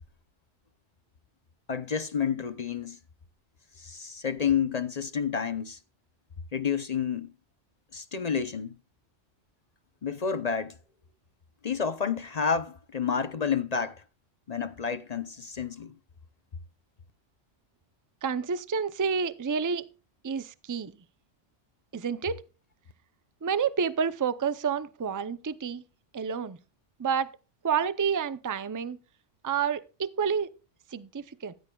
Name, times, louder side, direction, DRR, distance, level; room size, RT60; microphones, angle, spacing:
voice 1, 1.7-3.0 3.8-5.8 6.5-7.3 7.9-8.8 10.0-10.7 11.6-14.0 14.5-15.9, left 6 dB, 40° left, 0.6 m, -30 dB
voice 2, 18.2-19.9 20.2-21.0 21.9-22.4 23.4-25.8 26.1-26.6 27.0-27.3 27.6-29.0 29.4-30.5 30.9-31.5, right 6 dB, 30° right, 0.4 m, -29 dB
15.0 x 13.5 x 2.3 m
omnidirectional pair, 1.2 m